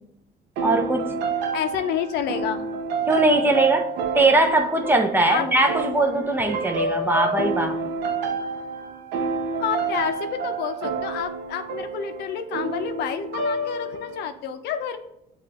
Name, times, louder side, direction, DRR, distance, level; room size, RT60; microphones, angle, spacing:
voice 1, 0.6-1.2 3.1-7.8, right 2 dB, 10° right, 4 dB, 0.6 m, -21 dB
sound 1, 0.6-14.2, right 3 dB, 85° right, 0.6 m, -29 dB
voice 2, 1.5-2.6 5.3-5.5 9.6-15.0, left 8 dB, 75° left, 8 dB, 0.5 m, -29 dB
7.2 x 2.4 x 2.9 m, 0.79 s
cardioid pair, 110°, 17 cm